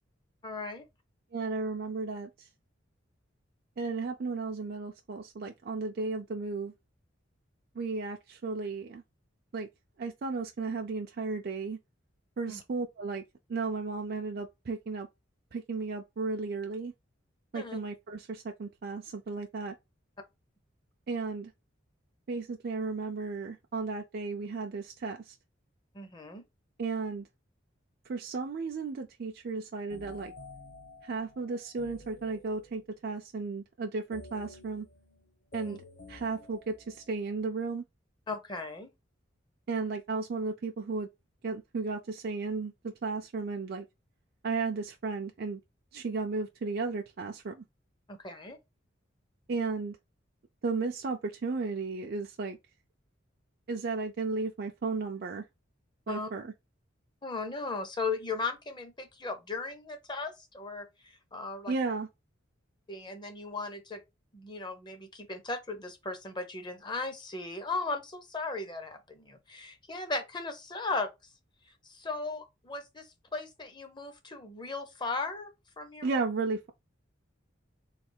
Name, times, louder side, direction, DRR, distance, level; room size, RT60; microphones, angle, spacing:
voice 1, 0.4-0.8 12.5-12.6 17.5-17.8 25.9-26.4 35.6-35.8 38.3-38.9 48.1-48.6 56.1-56.3 57.2-61.7 62.9-64.0 64.3-71.1 71.8-75.5 75.8-76.2, left 3 dB, 25° left, 0.6 m, -37 dB
voice 2, 1.3-2.3 3.8-6.7 7.8-9.0 9.5-9.7 10.0-11.8 12.4-13.2 13.5-15.1 15.5-16.9 17.5-19.7 21.1-21.5 22.3-25.3 26.8-27.3 28.1-30.3 31.0-34.9 35.5-35.8 36.1-37.8 39.7-41.1 41.4-43.8 44.4-45.6 45.9-47.6 49.5-50.0 50.6-52.6 53.7-55.4 56.1-56.5 61.7-62.1 76.0-76.7, right 4 dB, 50° right, 0.4 m, -34 dB
mystical melodic gling computer music box, 29.9-32.9 34.1-37.4, left 2 dB, 50° left, 0.8 m, -51 dB
3.2 x 2.4 x 4.3 m
head